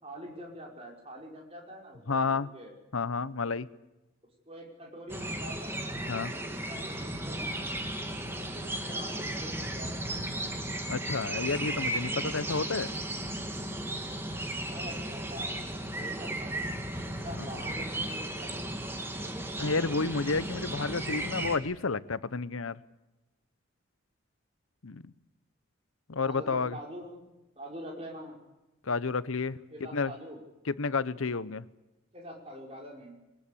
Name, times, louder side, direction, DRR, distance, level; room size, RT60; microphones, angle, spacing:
voice 1, 0.0-2.7 4.5-7.4 8.2-10.4 14.7-16.6 17.2-18.7 26.2-27.2 27.6-28.4 29.7-30.4 32.1-33.1, equal, 30° right, 0 dB, 5.4 m, -45 dB
voice 2, 2.1-2.5 2.9-3.7 6.1-6.3 10.9-12.9 17.4-17.5 19.6-22.8 24.8-25.1 26.1-26.8 28.8-29.6 29.9-30.1 30.7-31.6, left 4 dB, 85° left, 16 dB, 0.9 m, -30 dB
sound 1, 5.1-21.6, right 1 dB, 10° right, 2.1 m, -35 dB
22.5 x 20.0 x 8.6 m, 1.0 s
head